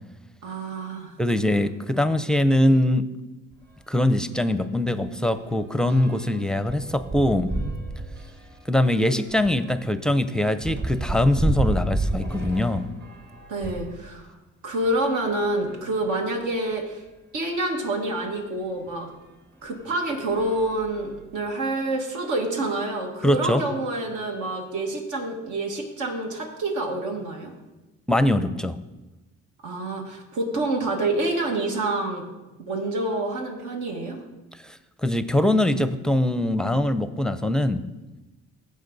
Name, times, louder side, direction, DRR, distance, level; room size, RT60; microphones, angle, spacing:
voice 1, 0.4-1.2 13.5-14.3 14.6-17.0 17.3-19.1 19.6-27.5 29.6-32.3 32.6-34.2, right 2 dB, 75° right, 1 dB, 2.0 m, -27 dB
voice 2, 1.2-3.1 3.9-7.5 8.7-12.9 23.2-23.6 28.1-28.8 34.6-37.8, left 1 dB, ahead, 11 dB, 0.5 m, -22 dB
sound 1, 3.5-3.7 4.1-4.2 4.5-14.0 14.7-16.0 16.7-16.8 17.1-17.2 18.9-19.0 19.6-19.9 20.3-21.5, right 2 dB, 35° right, 1.4 m, -32 dB
15.5 x 5.2 x 4.0 m, 1.1 s
cardioid pair, 90°, 30 cm